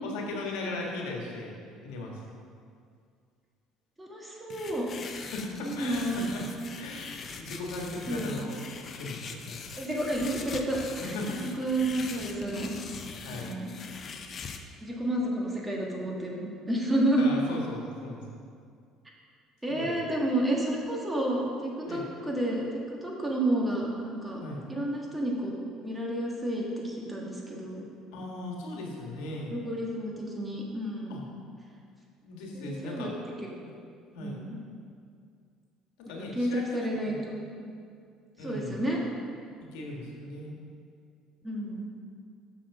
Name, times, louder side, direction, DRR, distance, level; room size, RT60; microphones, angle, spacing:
voice 1, 0.0-1.5 1.8-2.2 5.1-6.4 6.8-8.6 8.9-9.7 11.0-11.4 12.0-12.2 13.2-13.5 17.2-18.4 19.7-20.0 21.9-22.0 24.4-24.6 28.1-29.5 31.1-31.2 32.2-33.2 34.1-34.4 36.0-37.2 38.4-38.8 39.7-40.5, left 2 dB, 90° left, -1 dB, 1.5 m, -38 dB
voice 2, 4.0-4.9 5.6-6.3 8.1-8.5 9.8-11.1 11.6-13.7 14.8-17.3 19.6-22.6 23.0-24.4 24.7-27.8 29.5-31.2 32.5-33.1 34.2-34.6 36.1-37.1 37.6-37.7 38.4-39.0 41.4-41.9, right 1 dB, 10° right, -2 dB, 1.6 m, -30 dB
sound 1, 4.5-14.6, left 5 dB, 40° left, 0.6 m, -42 dB
6.4 x 5.9 x 6.0 m, 2.3 s
cardioid pair, 105°, 0 cm